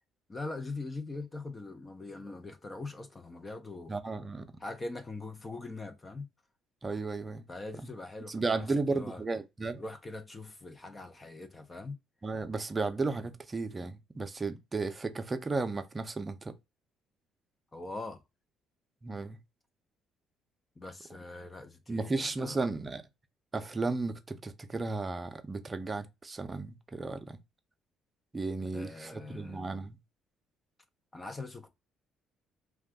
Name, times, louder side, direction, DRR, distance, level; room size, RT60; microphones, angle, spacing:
voice 1, 0.3-3.9 4.6-6.3 7.5-9.2 9.8-12.0 17.7-18.2 20.8-22.6 28.7-29.7 31.1-31.7, left 3 dB, 25° left, 0.6 m, -42 dB
voice 2, 3.9-4.5 6.8-7.5 8.3-9.8 12.2-16.5 19.0-19.4 21.9-23.0 23.5-27.4 28.3-30.0, right 3 dB, 30° right, 0.6 m, -34 dB
2.5 x 2.3 x 3.6 m
supercardioid pair, 65°, 0 cm